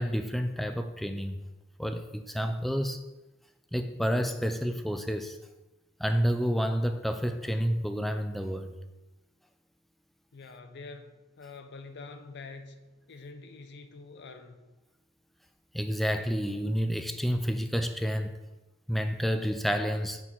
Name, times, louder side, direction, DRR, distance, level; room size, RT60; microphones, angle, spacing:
voice 1, 0.0-1.4 1.8-3.0 3.7-5.4 6.0-8.7 15.7-18.3 18.9-20.2, equal, ahead, 7 dB, 0.3 m, -29 dB
voice 2, 10.3-12.8 13.1-14.6, left 3 dB, 55° left, 8 dB, 0.6 m, -46 dB
5.7 x 4.1 x 4.5 m, 1.1 s
head